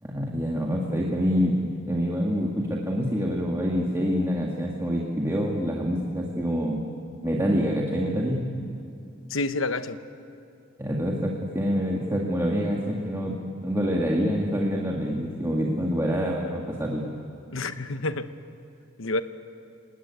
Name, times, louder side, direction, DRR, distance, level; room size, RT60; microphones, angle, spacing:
voice 1, 0.0-1.6 1.9-6.8 7.2-8.4 10.8-13.4 13.6-17.1, equal, 15° right, -2 dB, 1.9 m, -26 dB
voice 2, 9.3-10.0 17.5-18.3 19.0-19.2, left 2 dB, 80° left, 11 dB, 1.1 m, -28 dB
29.0 x 18.5 x 9.7 m, 2.5 s
head